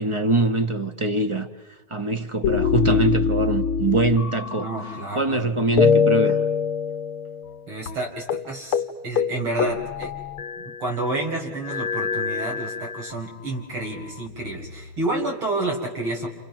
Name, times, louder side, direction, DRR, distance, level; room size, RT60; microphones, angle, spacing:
voice 1, 0.0-1.5 1.9-4.7 5.2-6.4, right 2 dB, 30° right, 0.6 m, -23 dB
sound 1, 2.4-5.4 5.8-7.6 7.9-8.0 8.3-8.5 8.7-8.9 9.2-10.9 11.6-13.2 13.9-14.8, left 6 dB, 85° left, 2.0 m, -24 dB
voice 2, 4.6-5.5 7.7-10.1 10.6-16.3, right 2 dB, 90° right, 5.6 m, -29 dB
29.5 x 28.5 x 6.0 m
omnidirectional pair, 2.3 m